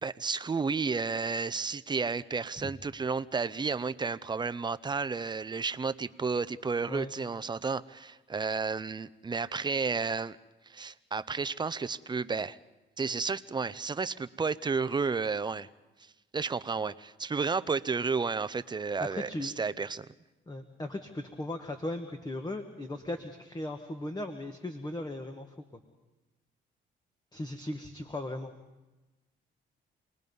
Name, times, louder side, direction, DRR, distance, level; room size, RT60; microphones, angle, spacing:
voice 1, 0.0-10.4 10.7-12.6 13.0-15.7 16.3-20.1, right 4 dB, 20° right, 14 dB, 0.6 m, -32 dB
voice 2, 19.0-19.5 20.5-25.5 27.3-28.5, left 1 dB, 20° left, 6 dB, 1.4 m, -37 dB
27.5 x 19.5 x 5.4 m, 1.1 s
cardioid pair, 90°, 20 cm